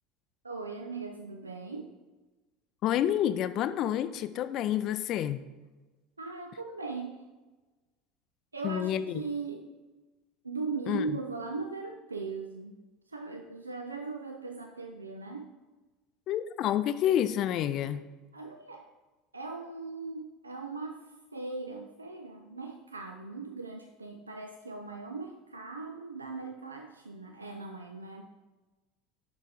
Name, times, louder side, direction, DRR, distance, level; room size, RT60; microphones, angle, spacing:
voice 1, 0.4-1.9 6.2-7.2 8.5-9.7 10.4-12.8 13.1-15.5 18.3-18.9 19.3-28.2, right 4 dB, 80° right, 4 dB, 0.4 m, -39 dB
voice 2, 2.8-5.4 8.6-9.2 10.9-11.0 16.3-18.0, left 11 dB, 45° left, 13 dB, 0.4 m, -29 dB
6.7 x 6.0 x 5.0 m, 1.2 s
figure-of-eight pair, 70°, 0 cm